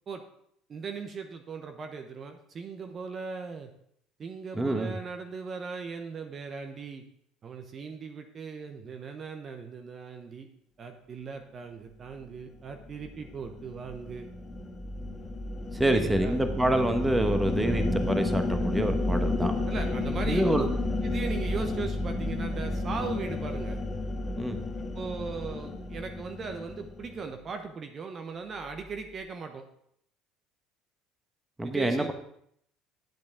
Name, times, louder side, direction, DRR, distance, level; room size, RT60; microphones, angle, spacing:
voice 1, 0.7-3.7 4.2-7.0 7.4-10.5 10.8-14.3 15.8-16.4 19.7-20.7 21.0-23.8 24.9-29.7 31.6-32.1, right 5 dB, 40° right, 5 dB, 0.9 m, -38 dB
voice 2, 4.5-4.9 15.7-19.5 20.2-20.7 24.4-24.6 31.6-32.1, right 1 dB, 10° right, 6 dB, 1.2 m, -26 dB
sound 1, 12.8-27.3, left 2 dB, 30° left, 1.6 m, -31 dB
10.5 x 8.5 x 3.6 m, 0.69 s
hypercardioid pair, 65°, 0 cm